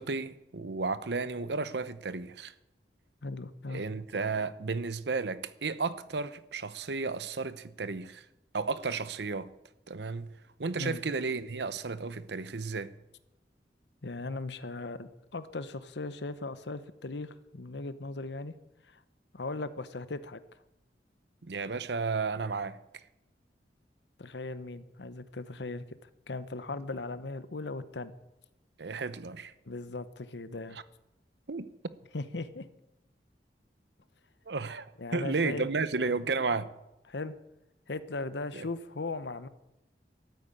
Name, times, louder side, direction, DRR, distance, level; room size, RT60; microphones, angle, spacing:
voice 1, 0.0-2.5 3.7-8.2 8.5-9.5 9.9-10.3 10.6-12.9 21.4-22.8 28.8-29.5 31.5-31.9 34.5-36.7 38.5-38.7, right 4 dB, 75° right, 0.8 m, -33 dB
voice 2, 3.2-3.8 10.8-11.0 14.0-18.6 18.9-19.0 19.3-20.4 24.2-26.0 26.3-28.1 29.7-30.8 32.1-32.7 35.0-35.7 37.1-37.4 37.9-39.5, left 3 dB, 80° left, 0.9 m, -38 dB
13.0 x 9.2 x 8.8 m
head